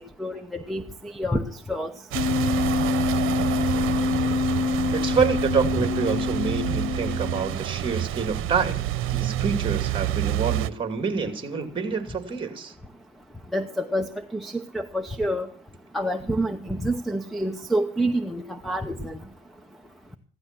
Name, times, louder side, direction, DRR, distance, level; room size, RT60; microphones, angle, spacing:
voice 1, 0.2-1.4 1.7-1.9 5.8-5.9 13.5-14.1 14.3-15.5 15.9-19.1, right 1 dB, ahead, 8 dB, 0.8 m, -27 dB
Wind instrument woodwind instrument, 2.1-7.6, left 5 dB, 40° left, 2.9 m, -26 dB
sound 1, 2.1-10.7, right 13 dB, 80° right, 0.9 m, -28 dB
voice 2, 4.9-8.8 9.1-12.7, right 5 dB, 25° right, 7 dB, 2.6 m, -27 dB
16.0 x 12.0 x 6.1 m, 0.43 s
cardioid pair, 155°, 21 cm